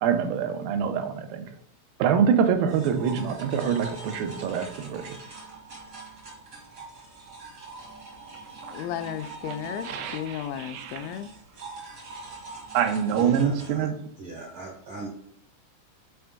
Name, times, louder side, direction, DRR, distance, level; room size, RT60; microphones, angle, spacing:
voice 1, 0.0-1.5 2.0-5.1 9.8-11.1 12.1-12.2 12.7-14.0, right 7 dB, 90° right, 7 dB, 2.5 m, -25 dB
sound 1, 2.7-13.7, right 3 dB, 55° right, 0.9 m, -43 dB
voice 2, 8.7-11.3, left 10 dB, 85° left, 9 dB, 2.3 m, -34 dB
voice 3, 13.1-13.9 14.2-15.1, right 1 dB, 70° right, -1 dB, 1.2 m, -38 dB
6.2 x 4.4 x 3.5 m, 0.75 s
omnidirectional pair, 4.2 m